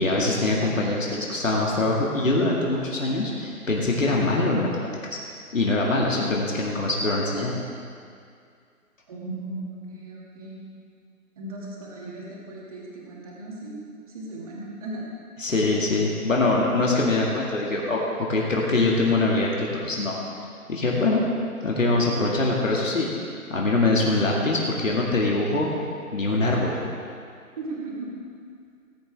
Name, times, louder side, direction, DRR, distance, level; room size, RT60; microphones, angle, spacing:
voice 1, 0.0-4.9 5.2-7.5 15.4-20.2 20.7-21.2 21.6-23.1 23.5-25.7 26.1-26.8, left 2 dB, 60° left, -3 dB, 2.2 m, -23 dB
voice 2, 9.1-10.6 11.4-13.8 14.1-15.0 27.6-28.1, right 2 dB, 25° right, -4 dB, 2.1 m, -37 dB
19.0 x 9.3 x 3.5 m, 2.3 s
figure-of-eight pair, 160°, 45 cm